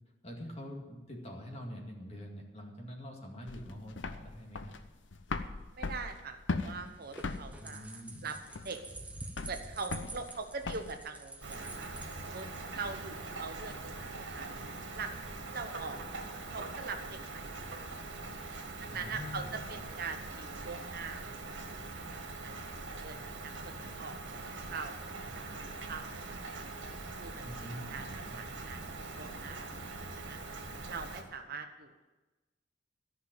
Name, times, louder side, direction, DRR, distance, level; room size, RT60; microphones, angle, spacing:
voice 1, 0.2-4.7 7.6-8.3 13.0-13.1 18.9-19.9 27.4-28.4, equal, 35° left, 0 dB, 2.2 m, -45 dB
sound 1, 3.5-11.0, left 3 dB, 80° left, 0.7 m, -39 dB
voice 2, 5.7-8.4 8.6-8.8 9.4-11.9 12.2-14.5 14.9-15.2 15.5-16.2 16.5-17.9 18.8-25.4 25.8-26.7 27.2-27.4 27.9-28.1 28.4-28.8 29.1-30.4 30.9-32.0, right 4 dB, 55° right, 6 dB, 1.0 m, -43 dB
sound 2, 6.8-12.8, right 2 dB, 10° right, 1.0 m, -48 dB
Rain, 11.4-31.2, right 3 dB, 85° right, 1.8 m, -43 dB
14.0 x 5.7 x 9.1 m, 1.1 s
head